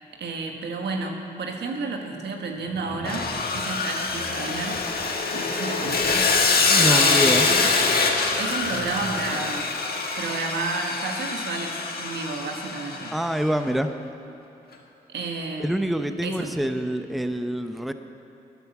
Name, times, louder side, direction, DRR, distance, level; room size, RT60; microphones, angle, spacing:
voice 1, 0.1-3.3 3.5-4.9 5.3-6.3 6.8-7.7 8.4-9.7 10.2-13.1 15.1-15.8 16.2-16.5, right 3 dB, 80° right, 3 dB, 1.4 m, -31 dB
sound 1, 2.5-9.3, right 1 dB, 45° right, 3.7 m, -43 dB
Sawing, 3.1-13.3, left 4 dB, 60° left, 1.5 m, -24 dB
voice 2, 6.7-7.5 13.1-13.9 15.6-17.9, equal, ahead, 8 dB, 0.7 m, -26 dB
12.0 x 9.4 x 7.2 m, 2.9 s
supercardioid pair, 55°, 18 cm